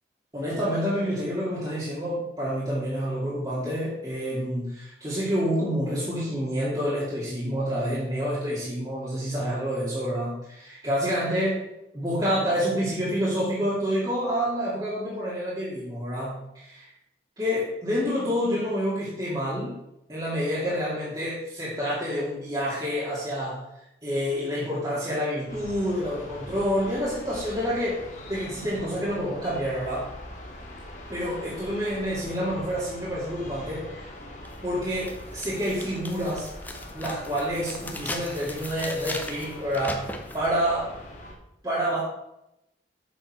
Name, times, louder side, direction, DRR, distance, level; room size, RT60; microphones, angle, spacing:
voice 1, 0.3-11.6 11.9-16.9 17.4-19.8 20.1-23.6 24.0-28.0 28.3-30.1 31.1-34.1 34.6-36.5 36.9-40.9 41.6-42.0, equal, 20° right, -9 dB, 2.4 m, -28 dB
sound 1, 25.5-41.3, left 1 dB, 40° left, 2.0 m, -42 dB
Unfold paper - actions, 34.4-34.5 35.0-40.5, left 2 dB, 10° left, 0.9 m, -38 dB
7.7 x 6.8 x 6.1 m, 0.86 s
head